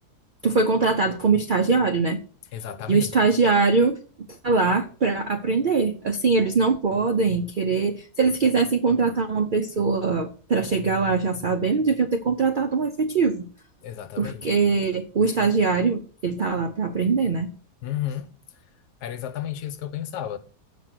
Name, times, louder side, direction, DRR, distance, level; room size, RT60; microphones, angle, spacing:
voice 1, 0.4-2.2 2.9-4.0 4.4-13.5 14.2-17.5, right 4 dB, 80° right, 0.4 m, -22 dB
voice 2, 2.5-3.1 13.8-14.5 17.8-18.3 19.0-20.4, left 11 dB, 80° left, 1.3 m, -32 dB
7.6 x 5.2 x 5.9 m
omnidirectional pair, 1.8 m